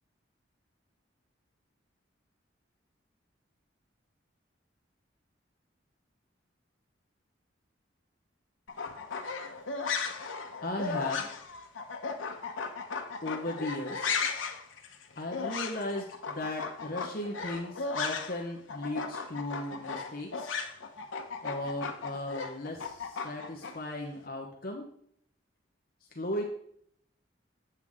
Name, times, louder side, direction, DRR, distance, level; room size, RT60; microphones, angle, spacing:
sound 1, 8.7-18.4 18.7-23.7, left 5 dB, 90° left, 0.9 m, -36 dB
voice 1, 10.6-11.3 13.2-14.1 15.2-20.5 21.4-24.8 26.1-26.4, left 1 dB, 50° left, 0 dB, 1.0 m, -36 dB
8.1 x 7.8 x 3.6 m, 0.68 s
head